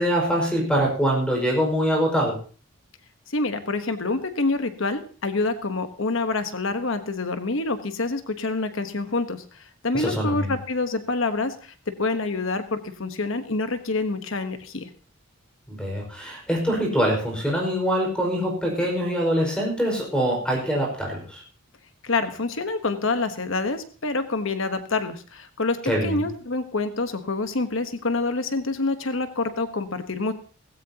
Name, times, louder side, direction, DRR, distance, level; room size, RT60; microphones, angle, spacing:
voice 1, 0.0-2.3 9.9-10.5 15.7-21.4 25.9-26.2, equal, 5° left, -1 dB, 5.2 m, -24 dB
voice 2, 3.3-14.9 22.0-30.3, left 3 dB, 65° left, 9 dB, 1.2 m, -27 dB
17.5 x 16.0 x 2.9 m, 0.39 s
head